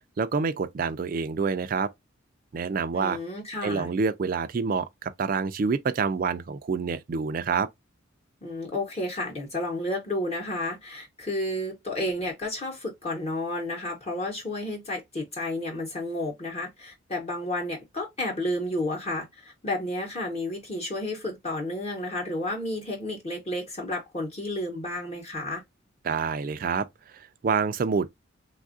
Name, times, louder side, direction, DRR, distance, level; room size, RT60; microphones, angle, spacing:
voice 1, 0.2-1.9 2.5-3.2 3.6-7.7 26.0-28.1, right 5 dB, 40° right, 0.3 m, -27 dB
voice 2, 2.9-3.9 8.4-25.6, left 1 dB, 30° left, 0.9 m, -31 dB
3.4 x 2.3 x 2.5 m
head